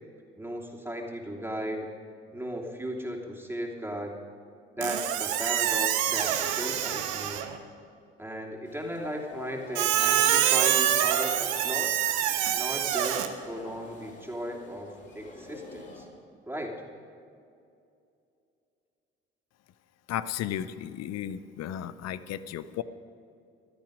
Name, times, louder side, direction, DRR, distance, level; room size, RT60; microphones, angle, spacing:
voice 1, 0.4-1.9 2.3-4.1 4.8-7.4 8.2-12.0 12.5-16.1 16.5-16.8, equal, 5° right, -1 dB, 2.8 m, -36 dB
Squeak, 4.8-7.6 9.7-13.3, right 11 dB, 70° right, 1.0 m, -26 dB
sound 1, 8.7-16.1, left 2 dB, 35° left, 4.3 m, -47 dB
voice 2, 20.1-22.8, left 11 dB, 55° left, 15 dB, 0.7 m, -34 dB
15.5 x 13.0 x 5.1 m, 2.5 s
hypercardioid pair, 50°, 31 cm